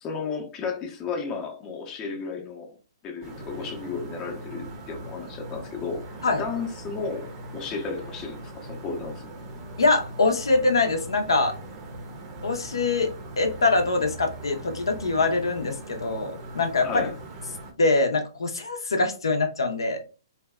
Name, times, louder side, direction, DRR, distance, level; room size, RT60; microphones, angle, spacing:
voice 1, 0.0-2.8 3.0-9.3 16.8-17.2, left 5 dB, 25° left, 0.6 m, -33 dB
sound 1, 3.2-17.7, right 1 dB, 30° right, 0.6 m, -40 dB
voice 2, 9.8-11.6 12.4-17.1 17.8-20.0, left 3 dB, 80° left, 0.6 m, -24 dB
2.6 x 2.2 x 2.2 m
hypercardioid pair, 130°, 2 cm